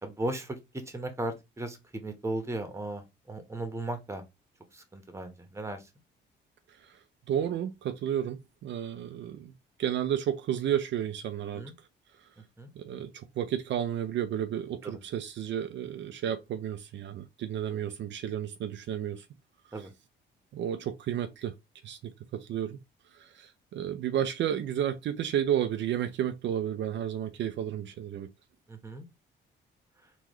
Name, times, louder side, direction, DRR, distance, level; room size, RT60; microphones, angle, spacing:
voice 1, 0.0-0.6 0.9-4.2 4.7-5.8 11.5-11.7 12.6-12.7 14.8-15.0 19.7-19.9 28.7-29.1, right 1 dB, 15° right, 1.1 m, -36 dB
voice 2, 7.3-9.5 9.8-11.6 12.8-19.2 19.8-19.9 20.5-21.5 21.8-22.8 23.1-28.3, right 10 dB, 70° right, 0.5 m, -32 dB
3.8 x 3.0 x 3.1 m
cardioid pair, 90°, 20 cm